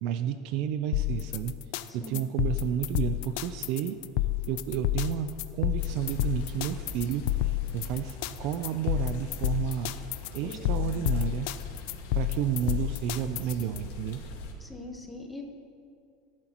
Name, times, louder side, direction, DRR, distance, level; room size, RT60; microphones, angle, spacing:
voice 1, 0.0-1.5 1.9-4.0 4.5-7.3 7.7-9.9 10.3-11.5 12.1-14.2, right 10 dB, 50° right, 10 dB, 0.5 m, -31 dB
sound 1, 0.9-13.8, left 15 dB, 65° left, 0.5 m, -30 dB
voice 2, 1.9-2.2 10.4-11.1 14.6-15.4, left 2 dB, 10° left, 2 dB, 1.2 m, -43 dB
sound 2, 5.8-14.5, left 3 dB, 85° left, 1.9 m, -43 dB
18.0 x 12.0 x 3.0 m, 2.4 s
supercardioid pair, 160°, 0 cm